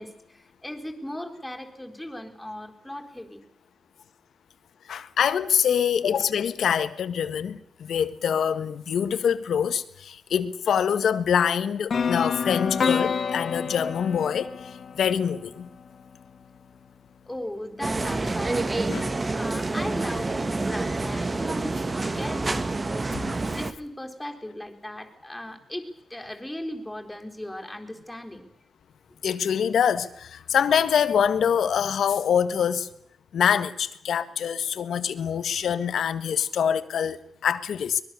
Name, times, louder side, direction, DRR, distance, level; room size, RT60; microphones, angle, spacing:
voice 1, 0.0-3.4 17.3-21.8 22.0-22.7 23.5-28.4, left 1 dB, 5° left, 4.2 m, -38 dB
voice 2, 4.9-15.7 18.9-19.1 23.1-23.2 29.2-32.9 33.3-38.0, left 8 dB, 80° left, 1.6 m, -25 dB
sound 1, 11.9-15.9, left 6 dB, 55° left, 2.1 m, -28 dB
sound 2, 17.8-23.7, right 3 dB, 30° right, 1.8 m, -28 dB
24.0 x 21.5 x 6.9 m
cardioid pair, 110°, 0 cm